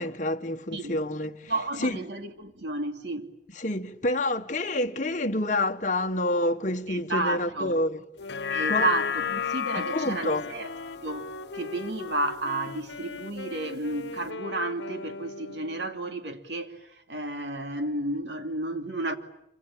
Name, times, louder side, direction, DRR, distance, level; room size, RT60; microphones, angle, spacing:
voice 1, 0.0-1.5 1.8-2.0 3.6-8.0 8.7-8.9 9.7-10.4, left 1 dB, 40° left, 1.4 m, -28 dB
voice 2, 1.5-3.3 6.9-7.8 8.5-19.1, right 2 dB, 75° right, 2.7 m, -32 dB
Wind instrument woodwind instrument, 8.2-16.2, left 3 dB, 90° left, 1.2 m, -40 dB
sound 1, 8.2-12.7 13.2-13.3, left 8 dB, 65° left, 1.0 m, -33 dB
26.5 x 26.0 x 8.7 m
head